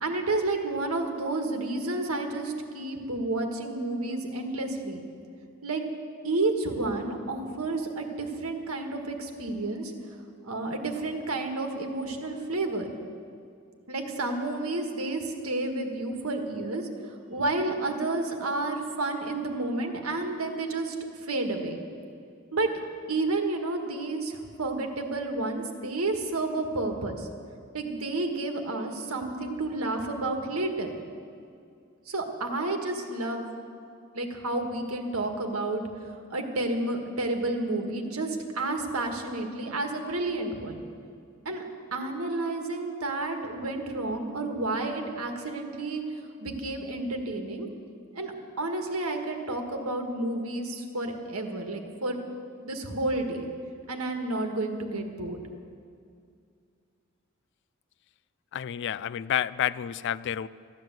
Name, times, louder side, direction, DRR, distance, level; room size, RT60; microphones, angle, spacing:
voice 1, 0.0-5.0 5.6-5.8 6.2-9.9 10.4-12.9 13.9-21.0 21.2-21.8 22.5-22.7 23.1-27.3 27.7-30.9 32.1-33.5 34.1-40.8 41.5-41.6 41.9-47.7 48.1-52.2 52.6-53.4 53.9-55.4, right 2 dB, 85° right, 4 dB, 1.7 m, -31 dB
voice 2, 58.5-60.5, left 10 dB, 55° left, 18 dB, 0.3 m, -29 dB
14.0 x 10.5 x 7.8 m, 2.3 s
head